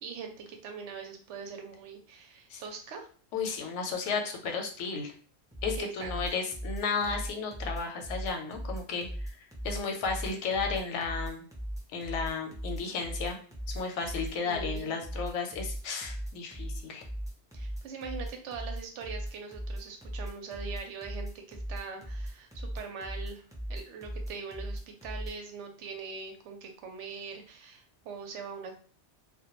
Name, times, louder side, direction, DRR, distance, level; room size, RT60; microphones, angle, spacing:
voice 1, 0.0-3.1 5.8-6.1 14.4-15.0 17.5-23.4 23.7-28.8, right 5 dB, 85° right, 4 dB, 0.9 m, -42 dB
voice 2, 3.3-5.1 5.6-9.1 9.6-11.4 11.9-13.4 13.7-17.0, left 5 dB, 90° left, 3 dB, 0.9 m, -33 dB
sound 1, 5.5-25.3, equal, 5° right, 0.3 m, -38 dB
2.2 x 2.1 x 2.9 m, 0.43 s
omnidirectional pair, 1.2 m